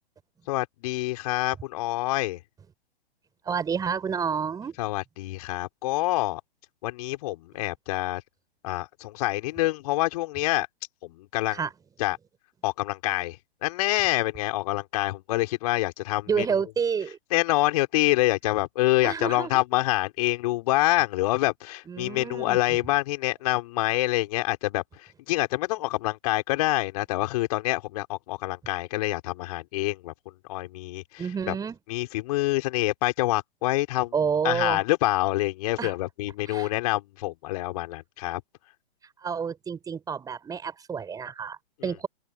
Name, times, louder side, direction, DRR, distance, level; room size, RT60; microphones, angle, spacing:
voice 1, 0.5-2.4 4.8-6.4 6.8-8.2 8.6-10.7 11.0-11.6 12.0-12.2 12.6-13.4 13.6-16.4 17.3-24.8 25.3-30.1 30.5-31.0 31.5-31.6 31.9-34.1 34.4-38.4, left 18 dB, 35° left, 4.8 m, -26 dB
voice 2, 3.4-4.7 11.5-11.7 16.3-17.2 19.0-19.6 21.9-22.8 31.2-31.8 34.1-34.8 35.8-35.9 36.5-36.7 39.2-42.1, right 6 dB, 10° right, 6.6 m, -29 dB
open air
figure-of-eight pair, 120°, 31 cm